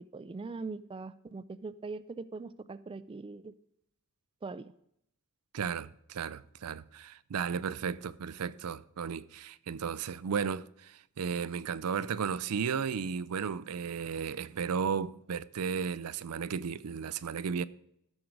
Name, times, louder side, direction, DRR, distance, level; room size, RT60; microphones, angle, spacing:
voice 1, 0.1-3.5 4.4-4.7, right 3 dB, 25° right, 0.3 m, -41 dB
voice 2, 5.5-17.6, right 6 dB, 90° right, 0.5 m, -34 dB
13.0 x 6.4 x 4.6 m
head